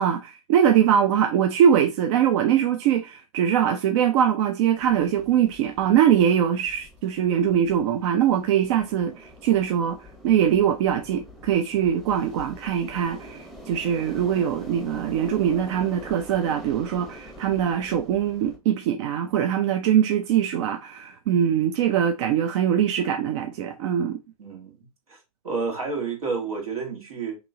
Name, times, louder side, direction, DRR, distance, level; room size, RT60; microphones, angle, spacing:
voice 1, 0.0-10.0 10.2-24.2, right 9 dB, 50° right, 0.5 m, -22 dB
sound 1, 4.8-18.6, equal, ahead, 0.8 m, -44 dB
voice 2, 24.4-25.2 25.4-27.4, right 4 dB, 75° right, 1.8 m, -30 dB
3.0 x 2.9 x 3.7 m
hypercardioid pair, 120°, 19 cm